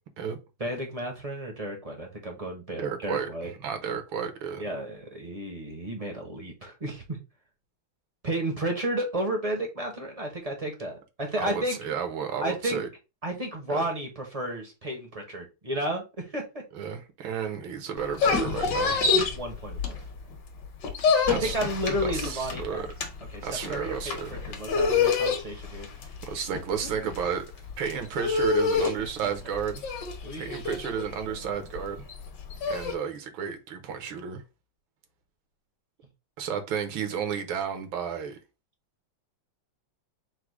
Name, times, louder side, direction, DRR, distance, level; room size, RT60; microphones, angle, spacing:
voice 1, 0.6-3.5 4.6-7.2 8.2-11.8 12.4-12.8 13.2-16.6 19.1-20.0 21.3-22.9 23.3-26.1 28.8-28.9 29.2-29.6 30.2-30.6 31.3-31.6, right 1 dB, 40° right, 0.5 m, -33 dB
voice 2, 2.8-4.7 11.4-12.9 13.7-13.8 16.7-19.0 21.3-21.6 22.0-22.9 23.4-24.3 24.9-25.1 26.3-27.5 27.8-29.8 30.4-32.0 32.7-34.4 36.4-38.4, right 7 dB, 80° right, 1.7 m, -32 dB
sound 1, 18.0-20.3 20.6-32.9, left 5 dB, 65° left, 1.5 m, -27 dB
4.7 x 2.1 x 4.7 m
omnidirectional pair, 2.2 m